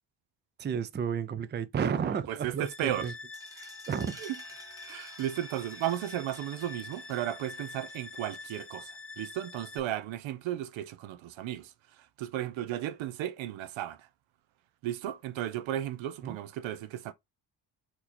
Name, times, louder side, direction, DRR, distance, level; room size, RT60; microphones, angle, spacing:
voice 1, 0.6-3.1 3.6-4.1 16.2-16.4, right 7 dB, 25° right, 0.4 m, -32 dB
voice 2, 2.4-3.1 4.9-8.9 9.2-11.7 12.2-14.0 14.8-17.1, right 12 dB, 90° right, 0.6 m, -34 dB
sound 1, 2.6-9.8, left 4 dB, 30° left, 0.7 m, -46 dB
sound 2, 3.3-8.9, right 1 dB, 10° right, 0.9 m, -53 dB
4.5 x 2.7 x 4.2 m
cardioid pair, 95°, 45 cm